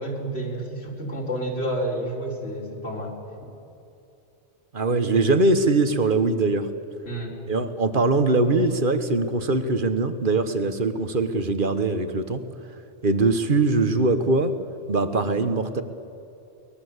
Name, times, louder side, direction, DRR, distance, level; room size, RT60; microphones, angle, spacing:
voice 1, 0.0-3.1 7.1-7.4, right 1 dB, 60° left, -2 dB, 4.0 m, -30 dB
voice 2, 4.7-6.7 7.5-12.4 13.0-14.6 14.9-15.8, right 3 dB, 45° right, 10 dB, 1.5 m, -22 dB
23.5 x 20.5 x 8.2 m, 2.7 s
omnidirectional pair, 1.2 m